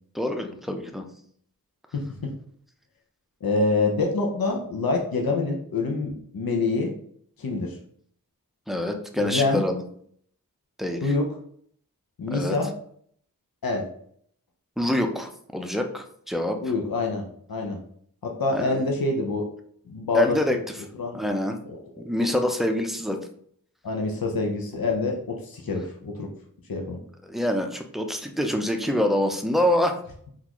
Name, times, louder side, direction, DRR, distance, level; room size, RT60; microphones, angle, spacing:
voice 1, 0.1-1.1 8.7-9.8 10.8-11.1 12.3-12.6 14.8-16.6 18.5-18.9 20.1-20.6 21.1-21.6 22.0-23.2 27.3-30.0, equal, ahead, 4 dB, 0.5 m, -26 dB
voice 2, 1.9-2.3 3.4-6.9 7.4-7.8 9.2-9.6 11.0-11.3 12.2-12.7 13.6-13.9 16.6-17.8 18.2-19.4 19.9-20.4 21.0-21.2 21.7-22.3 23.8-26.3 26.7-27.0, left 3 dB, 80° left, 1 dB, 0.6 m, -26 dB
3.7 x 2.4 x 2.9 m, 0.62 s
wide cardioid pair, 50°, 35 cm